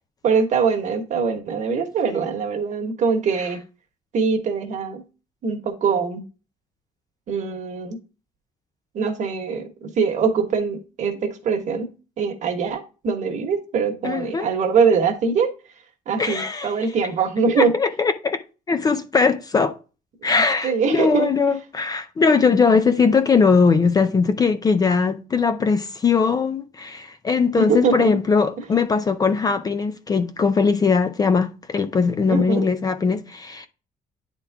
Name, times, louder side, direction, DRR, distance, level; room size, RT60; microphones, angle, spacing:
voice 1, 0.2-3.6 4.1-5.0 5.4-6.2 7.3-8.0 8.9-11.9 12.2-15.5 16.1-17.7 20.2-20.3 20.6-21.3 27.6-28.2 32.3-32.7, right 5 dB, 50° right, 1.3 m, -22 dB
voice 2, 14.0-14.5 16.2-16.7 17.6-18.4 18.7-19.7 20.2-33.7, left 5 dB, 25° left, 0.4 m, -20 dB
9.8 x 3.7 x 3.4 m
cardioid pair, 180°, 16 cm